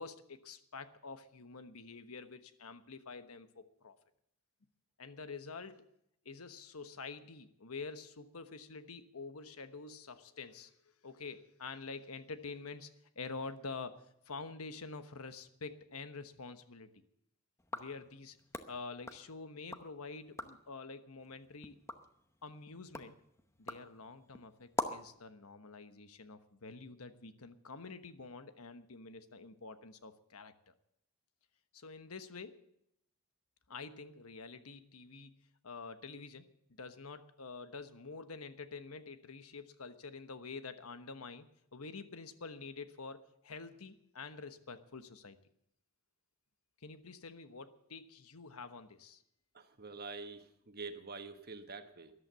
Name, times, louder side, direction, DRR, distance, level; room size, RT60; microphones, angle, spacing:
voice 1, 0.0-3.9 5.0-5.8 6.2-17.0 17.7-18.4 18.7-21.8 22.4-23.2 23.6-30.7 31.7-32.6 33.7-36.5 36.8-45.4 46.8-49.2, left 4 dB, 85° left, 10 dB, 1.2 m, -47 dB
sound 1, 17.6-19.9 20.2-20.7 21.2-25.2, left 2 dB, 15° left, 0.8 m, -45 dB
voice 2, 49.5-52.1, right 4 dB, 45° right, 7 dB, 1.3 m, -46 dB
14.0 x 11.5 x 6.9 m, 0.75 s
head